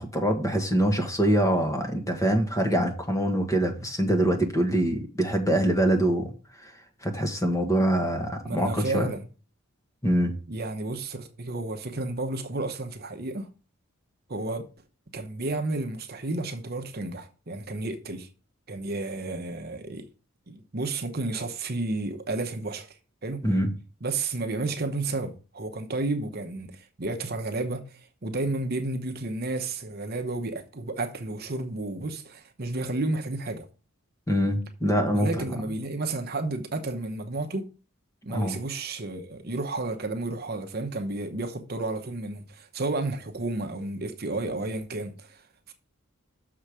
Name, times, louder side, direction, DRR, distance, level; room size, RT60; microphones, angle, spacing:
voice 1, 0.0-6.3 6.6-6.7 7.0-9.1 10.0-10.4 23.4-23.7 34.3-35.3 38.3-38.5, right 1 dB, 15° left, 1.3 m, -24 dB
voice 2, 8.4-9.3 10.5-13.5 14.3-14.7 15.1-18.3 18.7-20.1 20.5-23.0 23.2-23.5 24.0-33.7 35.1-37.7 38.2-45.7, right 2 dB, 45° right, 0.9 m, -32 dB
6.6 x 4.9 x 6.1 m
head